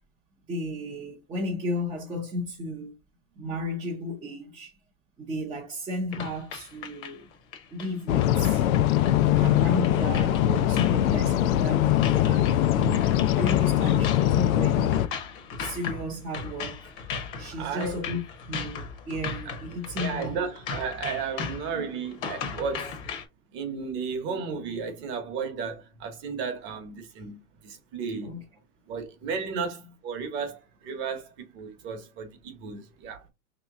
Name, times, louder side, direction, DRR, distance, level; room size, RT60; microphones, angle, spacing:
voice 1, 0.5-2.9 3.4-4.7 5.2-7.3 7.7-8.6 9.4-15.1 15.6-16.9 17.4-18.2 18.5-20.5 28.2-28.4 29.5-29.6, left 1 dB, 10° right, 0.5 m, -34 dB
sound 1, 6.1-23.3, left 6 dB, 40° left, 0.9 m, -38 dB
sound 2, 8.1-15.1, left 12 dB, 80° left, 0.5 m, -22 dB
voice 2, 17.6-18.0 20.0-23.0 23.5-28.4 28.9-33.2, right 5 dB, 30° right, 0.8 m, -34 dB
3.1 x 2.9 x 3.5 m
supercardioid pair, 155°, 41 cm